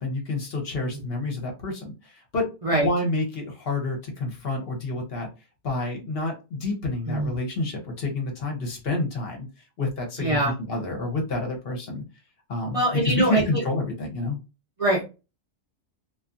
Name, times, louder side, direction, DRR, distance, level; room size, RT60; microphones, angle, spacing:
voice 1, 0.0-5.3 5.6-9.5 9.8-10.4 10.7-12.0 12.5-14.4, left 2 dB, 60° left, 2 dB, 1.0 m, -29 dB
voice 2, 10.2-10.5 12.7-13.6 14.8-15.0, right 1 dB, 40° right, -2 dB, 0.5 m, -23 dB
2.6 x 2.4 x 2.4 m, 0.29 s
omnidirectional pair, 1.2 m